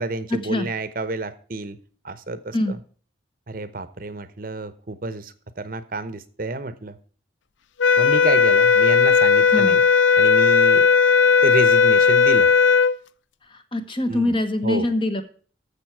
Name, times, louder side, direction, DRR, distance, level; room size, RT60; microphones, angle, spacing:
voice 1, 0.0-1.8 2.0-2.8 3.5-7.0 8.0-9.8 10.2-10.9 11.4-12.5 14.1-14.3 14.6-14.9, right 2 dB, 50° right, 13 dB, 0.9 m, -29 dB
sound 1, 7.8-13.0, left 5 dB, 85° left, 0.5 m, -16 dB
voice 2, 13.5-15.2, left 1 dB, 30° left, 8 dB, 1.3 m, -24 dB
14.0 x 7.0 x 4.7 m, 0.43 s
head